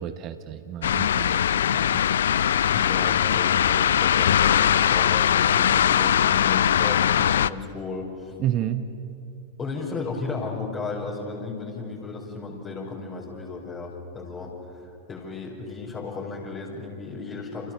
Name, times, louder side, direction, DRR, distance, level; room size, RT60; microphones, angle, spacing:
voice 1, 0.0-1.4 1.7-2.0 8.4-8.8, right 12 dB, 35° right, 10 dB, 1.2 m, -30 dB
sound 1, 0.8-7.5, left 9 dB, 65° left, 0.5 m, -21 dB
voice 2, 2.7-8.4 9.6-17.7, left 4 dB, 25° left, -4 dB, 5.3 m, -35 dB
30.0 x 29.0 x 6.9 m, 2.7 s
figure-of-eight pair, 90°, 0 cm